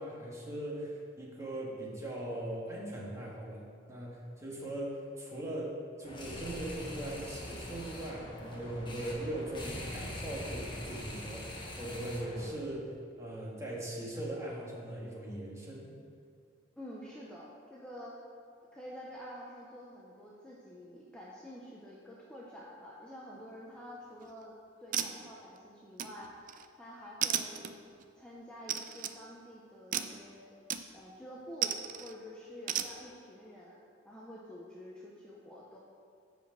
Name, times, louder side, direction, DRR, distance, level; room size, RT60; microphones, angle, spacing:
voice 1, 0.0-15.9, right 1 dB, 15° right, -4 dB, 1.6 m, -40 dB
sound 1, 6.0-12.5, left 1 dB, 25° left, 1.2 m, -43 dB
voice 2, 16.8-18.2 18.7-24.5 24.8-26.5 26.8-27.8 28.1-30.6 30.9-31.7 32.0-33.8 34.0-35.8, equal, 5° left, -6 dB, 0.8 m, -48 dB
Poker Chips, 24.1-24.4 24.9-25.6 26.0-26.7 27.2-28.0 28.7-29.2 29.9-30.2 30.7-31.1 31.6-32.1 32.7-32.9, right 9 dB, 45° right, 0.4 m, -35 dB
7.7 x 5.1 x 6.5 m, 2.2 s
head